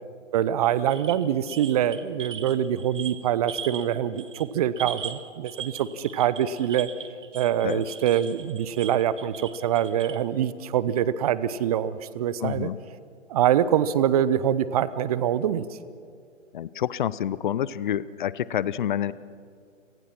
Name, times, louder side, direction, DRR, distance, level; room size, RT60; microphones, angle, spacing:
voice 1, 0.3-6.9 7.3-12.7 13.3-15.6, right 10 dB, 30° right, 16 dB, 0.7 m, -24 dB
sound 1, 0.9-3.9 4.1-4.5 4.8-10.2, right 7 dB, 75° right, 1.8 m, -39 dB
voice 2, 12.4-12.8 16.5-19.1, left 10 dB, 40° left, 19 dB, 0.6 m, -28 dB
28.5 x 18.5 x 6.0 m, 2.3 s
figure-of-eight pair, 130°, 38 cm